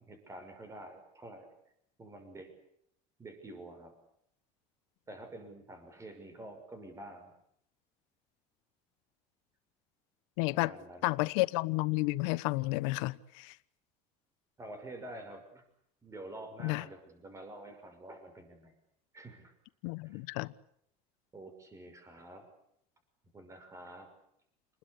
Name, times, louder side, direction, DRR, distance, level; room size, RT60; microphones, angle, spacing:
voice 1, 0.0-1.5 2.0-2.5 3.2-3.9 5.1-7.3 10.5-11.3 14.6-15.6 16.0-18.7 19.1-19.5 20.0-20.2 21.3-22.5 23.3-24.1, right 1 dB, 20° right, 8 dB, 6.1 m, -48 dB
voice 2, 10.4-10.7 11.0-13.5 16.6-16.8 19.8-20.5, left 22 dB, 90° left, 15 dB, 1.2 m, -31 dB
29.5 x 21.0 x 8.4 m, 0.72 s
cardioid pair, 135°, 16 cm